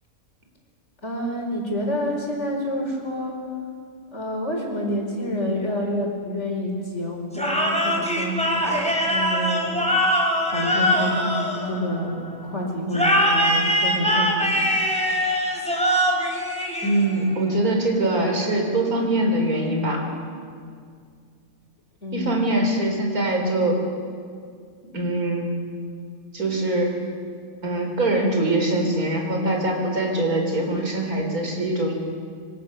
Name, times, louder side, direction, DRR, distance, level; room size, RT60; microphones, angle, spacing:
voice 1, 1.0-3.4 4.1-9.9 10.5-11.3 11.6-14.7 22.0-22.4, equal, 50° left, 0 dB, 5.3 m, -28 dB
sound 1, 7.3-12.2 12.9-17.3, equal, 5° left, 3.9 m, -22 dB
voice 2, 16.8-20.0 22.1-23.8 24.9-25.5 26.3-26.9 27.6-32.0, right 1 dB, 80° right, 1 dB, 4.6 m, -23 dB
25.5 x 24.5 x 6.7 m, 2.1 s
omnidirectional pair, 1.5 m